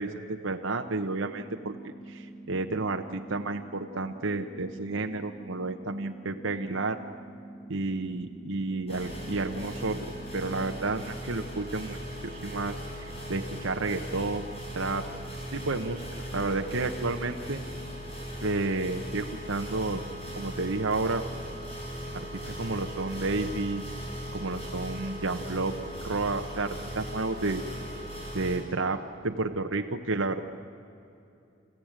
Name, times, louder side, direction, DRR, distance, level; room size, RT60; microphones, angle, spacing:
voice 1, 0.0-7.0 7.7-10.1 10.3-12.0 12.2-14.4 14.7-15.0 15.5-16.1 16.3-17.6 18.4-20.0 20.3-21.2 22.1-23.8 24.3-25.8 26.0-27.6 28.3-30.4, right 3 dB, 90° right, 4 dB, 1.1 m, -31 dB
sound 1, 1.2-11.2, right 2 dB, 10° left, 1.9 m, -46 dB
sound 2, 8.9-28.6, equal, 30° left, 5.8 m, -39 dB
28.5 x 15.5 x 9.0 m, 2.6 s
head